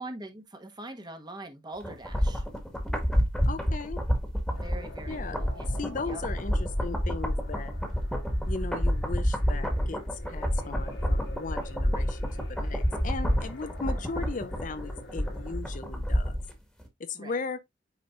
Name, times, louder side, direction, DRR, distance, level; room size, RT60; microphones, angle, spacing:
voice 1, 0.0-2.5 4.5-5.7 6.0-6.2 17.1-17.4, right 2 dB, 25° right, 1.5 m, -42 dB
sound 1, 1.8-16.5 16.8-16.9, equal, ahead, 1.8 m, -29 dB
voice 2, 3.4-4.0 5.1-5.4 5.8-7.7 8.5-16.4 17.0-17.6, left 4 dB, 45° left, 0.6 m, -37 dB
sound 2, 4.5-15.6, left 3 dB, 70° left, 2.0 m, -50 dB
8.8 x 5.1 x 2.5 m
head